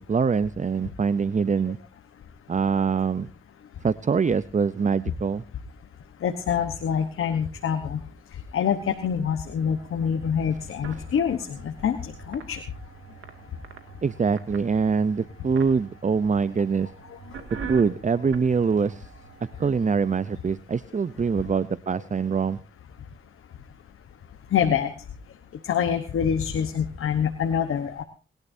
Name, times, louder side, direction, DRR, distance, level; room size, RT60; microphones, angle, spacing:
voice 1, 0.0-1.8 2.5-3.3 3.8-5.4 14.0-16.9 17.7-19.1 19.6-22.6, right 5 dB, 35° right, 16 dB, 0.6 m, -24 dB
voice 2, 6.2-8.0 8.5-12.6 24.5-24.9 25.6-28.0, left 8 dB, 90° left, 6 dB, 1.1 m, -25 dB
sound 1, 9.5-20.4, right 6 dB, 85° right, 2.3 m, -44 dB
30.0 x 12.0 x 2.7 m, 0.37 s
cardioid pair, 50°, 21 cm